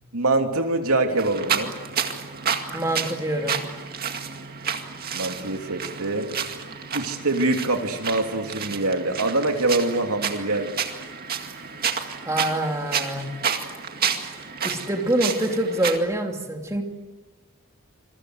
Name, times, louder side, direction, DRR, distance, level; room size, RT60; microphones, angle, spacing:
voice 1, 0.1-1.7 5.1-6.3 6.9-10.8, right 2 dB, 75° right, 4 dB, 3.2 m, -24 dB
sound 1, 1.2-16.0, right 7 dB, 40° right, 2.2 m, -30 dB
voice 2, 2.7-3.6 12.2-13.3 14.6-16.8, right 1 dB, 15° right, 2 dB, 2.8 m, -25 dB
27.5 x 23.0 x 8.0 m, 1.3 s
head